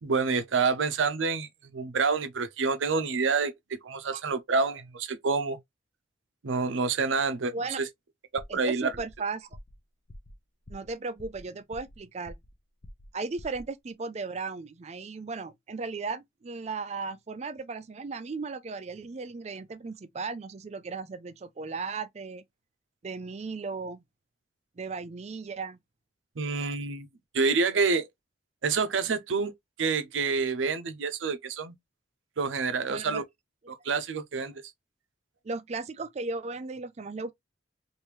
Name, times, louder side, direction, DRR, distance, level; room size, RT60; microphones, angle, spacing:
voice 1, 0.0-3.5 3.8-5.6 6.4-7.9 8.3-8.9 26.4-27.1 27.3-28.1 28.6-29.5 29.8-31.7 32.4-33.2 33.7-34.6, right 4 dB, 90° right, 0.6 m, -28 dB
sound 1, 8.4-8.7 8.9-9.2 9.5-9.8 10.1-10.4 10.7-10.9 11.2-12.0 12.3-12.6 12.8-13.1 13.4-13.7, left 1 dB, 40° left, 0.5 m, -47 dB
voice 2, 8.5-9.5 10.7-12.4 13.1-22.4 23.0-24.0 24.8-25.8 32.9-33.2 35.4-37.3, right 4 dB, 35° right, 0.4 m, -36 dB
3.3 x 2.6 x 3.0 m
head